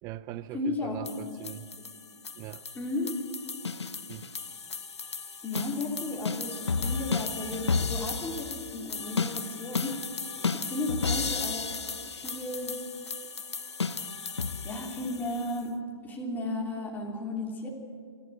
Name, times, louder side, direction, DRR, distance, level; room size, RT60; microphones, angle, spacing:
voice 1, 0.0-1.7 2.4-2.6 4.1-4.3, right 14 dB, 25° right, 18 dB, 0.6 m, -41 dB
voice 2, 0.5-1.2 2.7-3.1 5.4-11.8 12.1-12.8 14.6-15.8 16.0-17.7, left 2 dB, 10° left, -1 dB, 3.3 m, -34 dB
sound 1, 1.1-15.6, left 5 dB, 90° left, 0.9 m, -34 dB
27.0 x 11.5 x 9.1 m, 2.1 s
hypercardioid pair, 125°, 14 cm